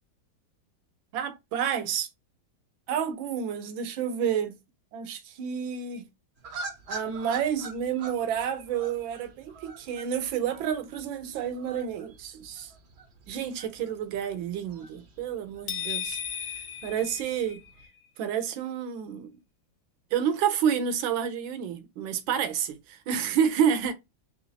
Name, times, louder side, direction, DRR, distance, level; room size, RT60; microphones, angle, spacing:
voice 1, 1.1-2.1 2.9-4.6 4.9-6.0 6.9-12.7 13.3-17.6 18.2-19.3 20.1-23.9, right 8 dB, 80° right, 1.5 m, -29 dB
sound 1, 6.4-17.9, right 2 dB, 55° right, 0.7 m, -46 dB
sound 2, 15.7-17.9, left 8 dB, 55° left, 1.4 m, -35 dB
4.4 x 3.2 x 2.6 m
omnidirectional pair, 2.1 m